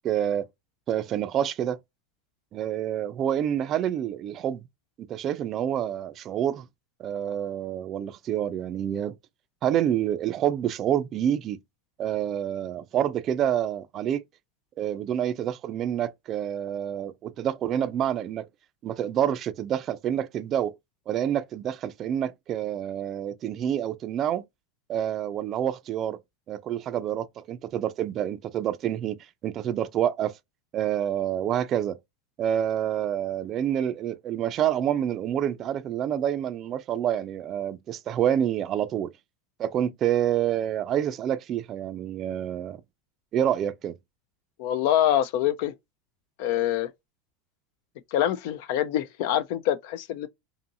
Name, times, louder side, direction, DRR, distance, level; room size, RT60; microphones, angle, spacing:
voice 1, 0.0-0.5 0.9-1.8 2.5-4.6 5.1-6.7 7.0-9.1 9.6-11.6 12.0-14.2 14.8-18.5 18.8-20.7 21.1-24.4 24.9-26.2 26.5-29.2 29.4-30.3 30.7-32.0 32.4-39.1 39.6-42.8 43.3-44.0, right 10 dB, 35° right, 0.4 m, -27 dB
voice 2, 44.6-45.7 46.4-46.9 48.1-50.3, left 11 dB, 65° left, 0.4 m, -25 dB
2.7 x 2.6 x 2.6 m
supercardioid pair, 140°, 0 cm